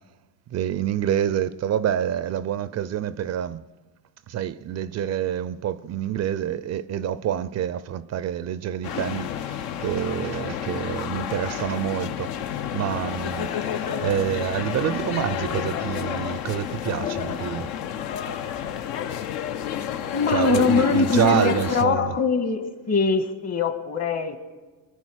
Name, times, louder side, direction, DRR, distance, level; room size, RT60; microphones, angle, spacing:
voice 1, 0.5-3.6 4.3-17.8 20.3-22.2, right 10 dB, 45° right, 0.5 m, -27 dB
sound 1, 8.8-21.9, left 9 dB, 65° left, 1.0 m, -30 dB
voice 2, 13.6-14.1 20.1-24.4, left 5 dB, 40° left, 1.6 m, -23 dB
23.5 x 9.6 x 6.3 m
supercardioid pair, 100°, 39 cm